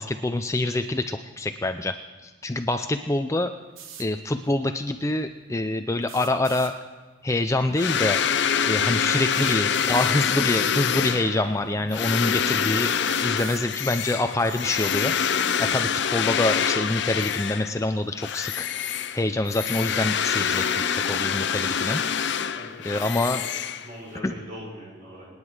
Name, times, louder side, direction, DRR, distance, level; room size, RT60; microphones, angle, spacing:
voice 1, 0.0-1.9 2.2-3.5 4.0-6.7 7.2-8.2 8.6-12.9 13.2-15.1 15.6-18.7 19.1-22.4 22.8-23.4 24.2-24.3, left 2 dB, 15° left, 7 dB, 0.4 m, -26 dB
sound 1, 3.8-4.1 6.0-6.7 8.2-8.3 9.3-10.2 11.2-11.3 11.9-12.0 12.8-13.7, right 7 dB, 85° right, 1.3 m, -41 dB
sound 2, 7.8-17.8 18.2-24.2, left 7 dB, 55° left, 0.6 m, -26 dB
voice 2, 9.4-10.4 22.5-23.5 23.8-25.3, equal, 40° right, -3 dB, 6.1 m, -41 dB
26.0 x 9.8 x 4.9 m, 1.4 s
head